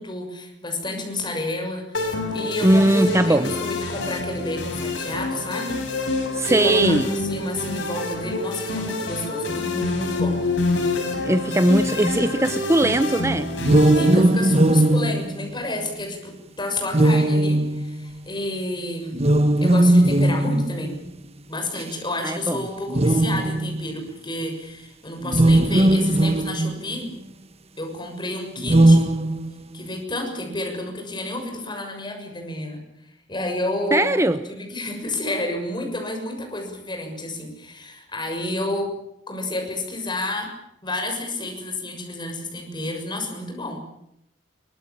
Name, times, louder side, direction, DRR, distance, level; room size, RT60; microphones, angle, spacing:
voice 1, 0.0-5.8 6.6-10.4 13.9-19.3 19.6-21.0 21.5-27.1 27.8-29.1 29.7-32.8 33.3-34.1 34.5-38.9 39.3-40.5 40.8-43.8, left 1 dB, 25° left, 3 dB, 6.7 m, -30 dB
sound 1, 1.9-15.0, left 2 dB, 75° left, 6.8 m, -27 dB
voice 2, 2.6-3.5 6.3-7.1 11.2-13.5 22.2-22.6 33.9-34.4, right 1 dB, 15° right, 10 dB, 0.9 m, -19 dB
sound 2, 13.6-16.0 16.9-18.2 19.1-21.0 21.8-21.9 22.9-23.9 25.2-27.0 28.6-29.8, right 1 dB, 35° right, 1.4 m, -18 dB
24.0 x 21.5 x 8.8 m, 0.78 s
head